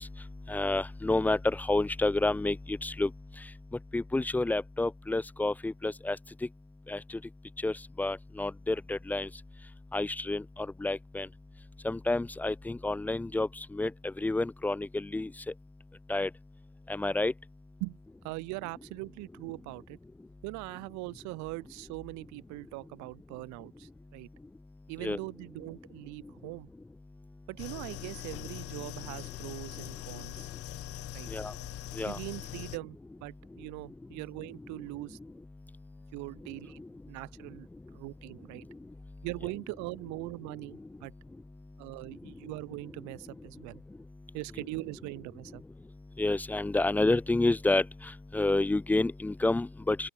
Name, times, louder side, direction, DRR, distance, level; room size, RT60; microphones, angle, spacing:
voice 1, 0.0-6.5 6.9-7.3 7.6-9.4 9.9-11.3 11.8-15.5 16.1-16.3 16.9-17.3 24.4-24.5 25.0-25.2 26.2-26.3 30.1-30.4 31.3-32.2 35.7-36.1 36.8-36.9 37.7-37.9 38.5-39.2 40.8-40.9 42.2-42.3 43.9-44.3 45.8-45.9 46.1-50.1, left 2 dB, 5° left, 0.6 m, -30 dB
voice 2, 18.2-20.0 20.4-24.3 24.9-26.7 27.5-30.5 31.1-31.3 32.0-35.2 36.1-36.8 37.1-38.7 39.2-41.1 41.8-43.8 44.3-45.6, right 25 dB, 50° right, 7.1 m, -41 dB
sound 1, 27.6-32.8, left 16 dB, 40° left, 3.4 m, -42 dB
open air
hypercardioid pair, 125°, 37 cm